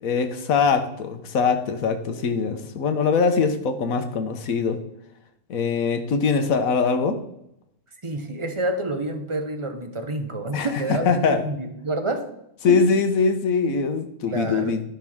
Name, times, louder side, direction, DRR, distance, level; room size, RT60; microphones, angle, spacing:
voice 1, 0.0-4.8 5.5-7.2 10.5-11.5 12.6-14.8, left 5 dB, 80° left, 7 dB, 1.3 m, -22 dB
voice 2, 8.0-12.3 12.7-12.8 14.3-14.8, right 2 dB, 25° right, 6 dB, 0.9 m, -28 dB
13.5 x 5.8 x 3.6 m, 0.78 s
omnidirectional pair, 1.4 m